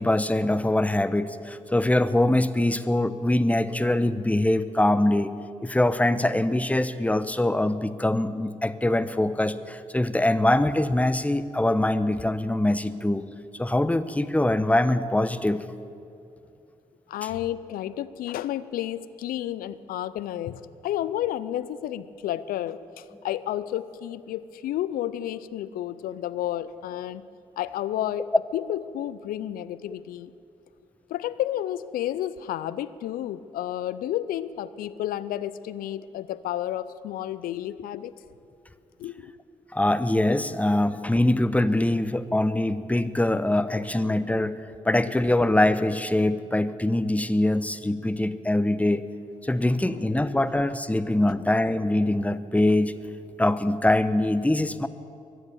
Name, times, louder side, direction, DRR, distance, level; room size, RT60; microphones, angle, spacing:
voice 1, 0.0-5.3 5.6-13.2 13.5-15.6 39.7-49.0 49.4-52.9 53.4-54.9, left 1 dB, 10° left, 13 dB, 0.9 m, -23 dB
voice 2, 17.1-27.2 27.6-30.3 31.1-38.1 39.0-39.3 44.0-44.1 49.8-50.0, left 12 dB, 70° left, 16 dB, 0.5 m, -31 dB
23.0 x 8.1 x 7.0 m, 2.4 s
hypercardioid pair, 40°, 15 cm